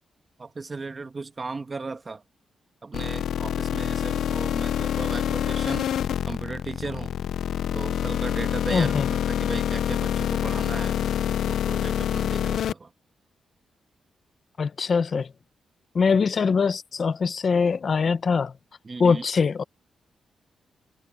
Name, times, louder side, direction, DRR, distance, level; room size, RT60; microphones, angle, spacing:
voice 1, 0.4-2.2 2.8-5.9 6.3-7.2 7.7-11.0 11.5-12.9 18.8-19.2, right 3 dB, 25° right, 1.3 m, -36 dB
sound 1, 2.9-12.7, left 10 dB, 80° left, 0.4 m, -26 dB
voice 2, 8.7-9.1 14.6-15.3 15.9-18.5 19.0-19.6, left 5 dB, 40° left, 0.8 m, -22 dB
wide cardioid pair, 160°, 0 cm